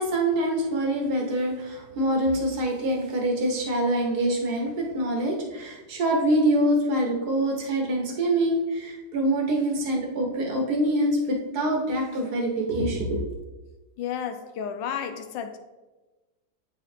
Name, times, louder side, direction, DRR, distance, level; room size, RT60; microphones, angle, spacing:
voice 1, 0.0-13.2, right 1 dB, 60° right, 1 dB, 1.7 m, -25 dB
voice 2, 14.0-15.6, left 8 dB, 90° left, 8 dB, 1.4 m, -32 dB
8.3 x 4.0 x 4.4 m, 1.1 s
omnidirectional pair, 2.0 m